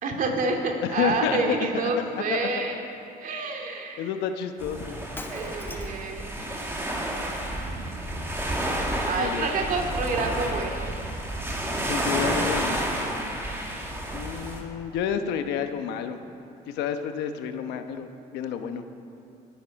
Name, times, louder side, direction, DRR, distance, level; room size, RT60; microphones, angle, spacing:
voice 1, 0.0-2.8 3.2-4.1 5.3-6.3 9.0-11.0 13.0-13.5, right 3 dB, 55° right, 2 dB, 2.4 m, -28 dB
voice 2, 0.8-1.7 2.3-2.4 4.0-5.0 9.2-9.8 11.9-12.9 14.1-16.2 16.7-18.1 18.3-18.8, left 8 dB, 90° left, 8 dB, 1.1 m, -30 dB
sound 1, 4.6-14.6, right 1 dB, 15° right, 2.4 m, -30 dB
Shatter, 5.1-6.1, left 2 dB, 10° left, 1.0 m, -41 dB
21.0 x 10.5 x 5.3 m, 2.7 s
cardioid pair, 110°, 17 cm